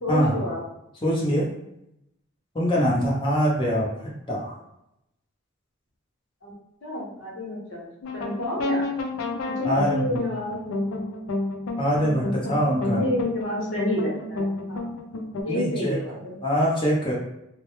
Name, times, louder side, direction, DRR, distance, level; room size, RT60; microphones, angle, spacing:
voice 1, 0.0-0.6 6.4-6.5 6.8-8.9 9.4-11.0 12.8-14.9 15.4-16.4, left 1 dB, 70° left, -4 dB, 0.9 m, -30 dB
voice 2, 1.0-1.5 2.5-3.9 4.3-4.5 9.6-10.2 11.8-13.0 15.5-16.0 16.4-17.1, equal, 25° left, -5 dB, 0.7 m, -23 dB
sound 1, 8.0-15.4, left 2 dB, 85° left, 0.4 m, -30 dB
2.1 x 2.0 x 2.9 m, 0.84 s
head